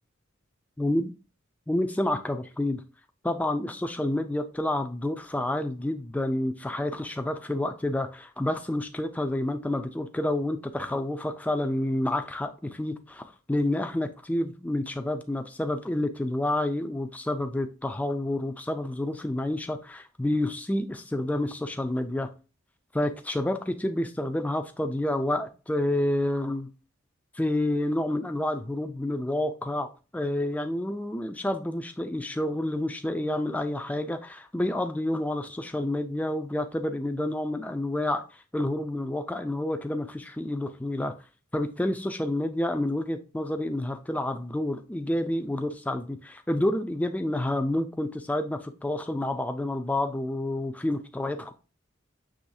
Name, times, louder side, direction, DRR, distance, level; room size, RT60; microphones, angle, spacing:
voice 1, 0.8-1.1 1.7-2.8 3.2-22.3 22.9-26.7 27.3-29.9 30.1-38.2 38.5-41.1 41.5-51.5, left 1 dB, 5° left, 0.4 m, -29 dB
6.3 x 3.1 x 2.6 m
head